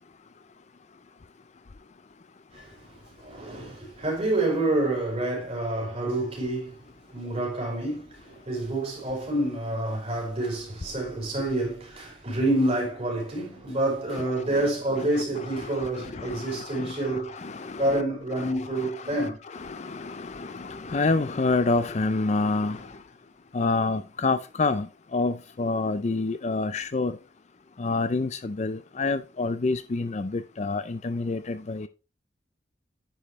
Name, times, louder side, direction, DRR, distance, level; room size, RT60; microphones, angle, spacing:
voice 1, 2.5-6.8 7.1-17.4 17.8-19.4, right 1 dB, 30° right, 4.6 m, -28 dB
voice 2, 15.6-17.9 18.4-22.9 23.5-27.2 27.8-31.9, left 3 dB, 35° left, 0.5 m, -28 dB
9.9 x 5.4 x 3.1 m
head